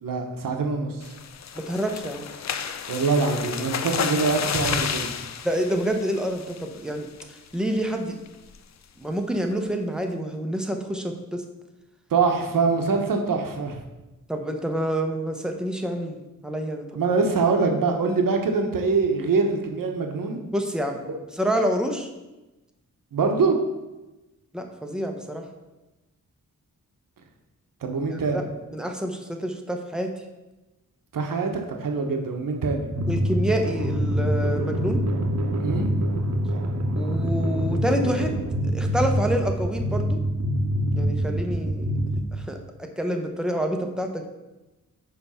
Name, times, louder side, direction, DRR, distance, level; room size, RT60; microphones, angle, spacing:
voice 1, 0.0-1.1 2.9-5.1 12.1-13.8 16.9-20.4 21.1-21.2 23.1-23.6 27.8-28.4 31.1-32.9 35.6-35.9, right 4 dB, 75° right, 3 dB, 1.2 m, -24 dB
sound 1, 1.0-6.8 7.2-7.5 7.8-7.9 8.3-8.6, left 7 dB, 55° left, 0.5 m, -31 dB
voice 2, 1.6-2.3 5.4-7.1 7.5-8.2 9.0-11.4 14.3-16.9 20.5-21.0 21.3-22.1 24.5-25.5 28.1-28.4 28.7-30.1 33.1-35.0 36.9-40.2 40.9-44.3, equal, ahead, 3 dB, 0.8 m, -28 dB
sound 2, 32.9-42.2, equal, 55° right, 1.0 m, -25 dB
9.7 x 3.4 x 5.6 m, 1.1 s
wide cardioid pair, 145°, 33 cm